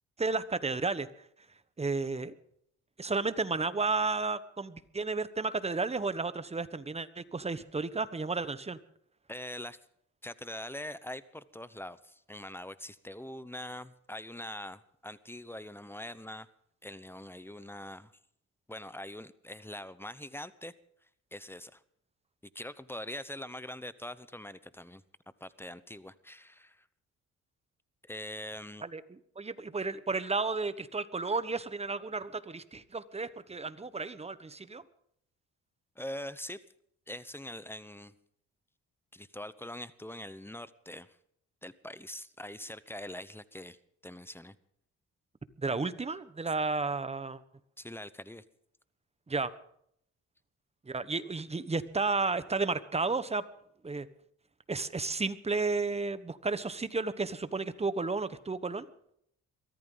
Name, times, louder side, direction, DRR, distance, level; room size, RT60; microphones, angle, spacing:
voice 1, 0.2-1.1 1.8-2.3 3.0-8.8 28.8-34.8 45.6-47.4 49.3-49.5 50.9-53.4 53.8-54.1 54.7-58.9, right 3 dB, 20° right, 13 dB, 1.2 m, -32 dB
voice 2, 9.3-9.8 10.2-16.5 16.8-18.1 18.7-20.7 21.3-21.8 22.5-25.0 25.4-26.9 28.0-28.8 36.0-36.6 37.1-38.1 39.1-41.2 41.6-43.8 44.0-44.6 47.8-48.4, left 1 dB, 5° left, 15 dB, 0.9 m, -43 dB
23.0 x 14.5 x 4.0 m, 0.70 s
cardioid pair, 90°, 30 cm